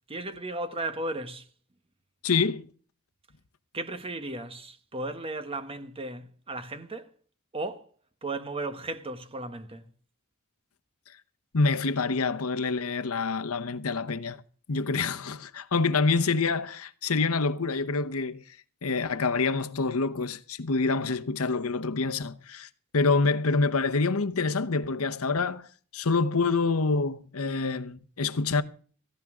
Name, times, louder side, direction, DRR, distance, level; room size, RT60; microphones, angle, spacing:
voice 1, 0.1-1.5 3.7-7.1 7.5-7.9 8.2-9.8, right 2 dB, 25° right, 1.2 m, -35 dB
voice 2, 2.2-2.7 11.5-14.4 14.7-18.4 18.8-25.7 25.9-28.6, left 4 dB, 75° left, 0.9 m, -26 dB
17.0 x 15.0 x 3.7 m
head